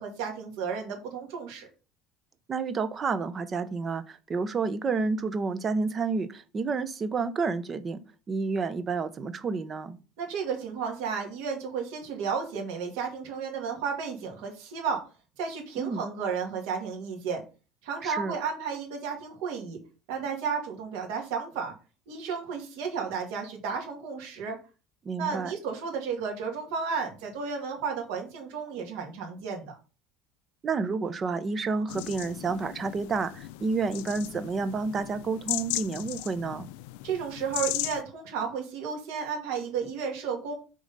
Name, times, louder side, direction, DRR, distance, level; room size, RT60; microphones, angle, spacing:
voice 1, 0.0-1.7 10.2-15.0 15.4-17.4 17.8-19.8 20.1-21.7 22.1-24.6 25.2-29.8 37.0-40.5, right 6 dB, 75° right, 2.3 m, -33 dB
voice 2, 2.5-8.0 8.3-10.0 15.8-16.0 18.0-18.4 25.0-25.5 30.6-36.7, right 4 dB, 25° right, 0.6 m, -30 dB
sound 1, 31.9-38.0, left 18 dB, 85° left, 0.3 m, -36 dB
6.4 x 3.9 x 5.3 m
cardioid pair, 160°, 0 cm